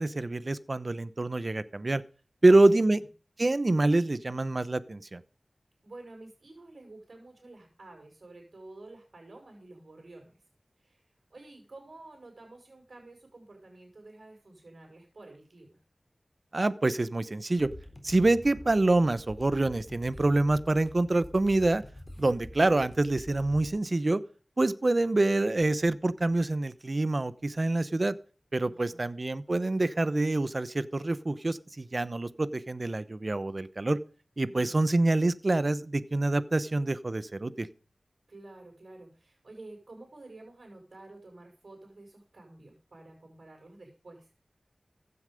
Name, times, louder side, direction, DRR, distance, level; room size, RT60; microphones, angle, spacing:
voice 1, 0.0-2.0 2.4-3.0 3.4-5.2 16.5-17.7 18.0-21.8 22.2-24.2 24.6-28.2 28.5-34.0 34.4-37.7, right 2 dB, 45° right, 15 dB, 0.9 m, -26 dB
voice 2, 2.4-3.0 5.8-10.4 10.8-15.8 28.6-29.1 34.4-35.1 38.3-44.4, right 2 dB, 70° right, 0 dB, 6.3 m, -50 dB
sound 1, 17.6-23.7, left 1 dB, 35° left, 3.8 m, -47 dB
15.5 x 9.8 x 5.2 m, 0.38 s
wide cardioid pair, 70°, 0 cm